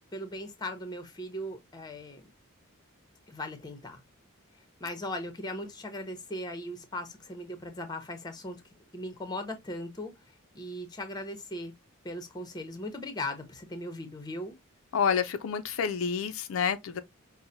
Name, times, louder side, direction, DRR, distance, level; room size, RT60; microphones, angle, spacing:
voice 1, 0.1-2.2 3.3-4.0 4.8-8.6 8.9-10.1 10.5-11.7 12.0-14.6, left 1 dB, 20° left, 0.7 m, -38 dB
voice 2, 14.9-17.0, left 6 dB, 70° left, 0.4 m, -28 dB
5.3 x 2.1 x 2.6 m
head